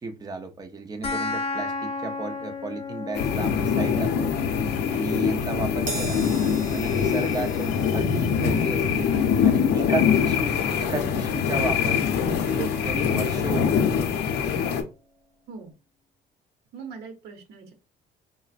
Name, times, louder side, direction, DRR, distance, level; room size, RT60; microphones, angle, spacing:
voice 1, 0.0-4.4 4.9-6.2 6.7-9.1 9.4-12.0 12.3-13.8, right 4 dB, 20° right, 0.6 m, -33 dB
sound 1, 1.0-12.0, left 4 dB, 35° left, 0.6 m, -36 dB
sound 2, 3.1-14.8, left 7 dB, 80° left, 0.6 m, -24 dB
Crash cymbal, 5.9-12.5 12.8-13.1 14.1-14.2, right 3 dB, 55° right, 1.6 m, -42 dB
voice 2, 9.9-10.2 15.5-15.7 16.7-17.7, right 5 dB, 75° right, 0.9 m, -41 dB
3.8 x 2.1 x 2.4 m
cardioid pair, 110°, 17 cm